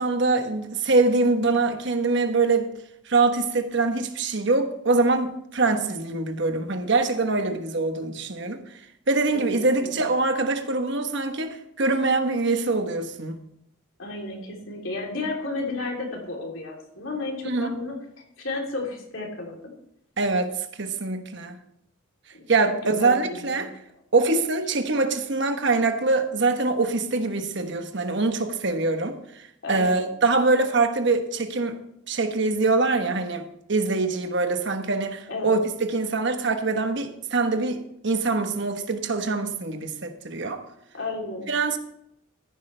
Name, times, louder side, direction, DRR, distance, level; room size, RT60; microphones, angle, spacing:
voice 1, 0.0-2.7 3.1-8.8 9.1-13.4 17.4-17.7 20.2-21.6 22.5-23.7 24.1-31.8 32.1-40.6 41.5-41.8, right 3 dB, 55° right, 1.1 m, -24 dB
voice 2, 9.5-10.0 14.0-17.9 18.4-19.7 22.3-22.4 22.8-23.2 23.5-23.6 29.6-30.1 35.3-35.6 40.9-41.5, left 2 dB, 70° left, 3.2 m, -32 dB
14.5 x 11.0 x 3.3 m
head